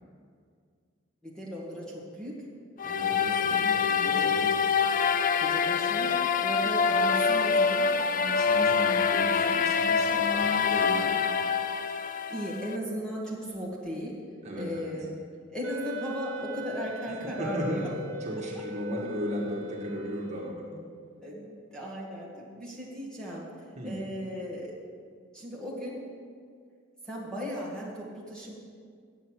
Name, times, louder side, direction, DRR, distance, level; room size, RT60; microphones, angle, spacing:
voice 1, 1.2-2.4 4.0-4.4 5.4-7.9 12.3-14.2 14.6-15.2 15.5-17.9 18.5-18.6 21.2-23.5 23.8-24.8 25.3-26.0 27.0-28.5, equal, 5° left, -6 dB, 1.7 m, -36 dB
sound 1, 2.8-12.8, left 6 dB, 40° left, 0.4 m, -25 dB
voice 2, 2.8-4.5 8.2-11.1 14.4-14.9 17.4-17.8 18.2-20.8 23.8-23.9, equal, 35° right, -3 dB, 1.8 m, -36 dB
Wind instrument woodwind instrument, 15.6-20.8, equal, 75° right, 0.8 m, -41 dB
9.4 x 8.3 x 6.2 m, 2.1 s
head